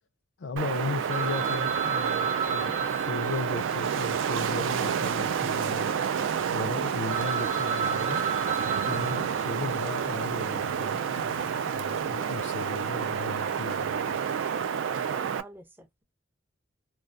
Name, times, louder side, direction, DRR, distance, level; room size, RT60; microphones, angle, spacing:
voice 1, 0.4-5.9 6.5-8.3 8.8-14.2, left 4 dB, 70° left, 0.4 m, -36 dB
Wind, 0.6-15.4, right 7 dB, 85° right, 0.3 m, -29 dB
Telephone, 1.1-5.4 5.7-5.8 6.4-6.5 6.8-6.9 7.1-10.1, right 6 dB, 40° right, 0.7 m, -33 dB
voice 2, 15.0-16.0, right 1 dB, 10° right, 0.4 m, -49 dB
2.3 x 2.2 x 2.5 m
head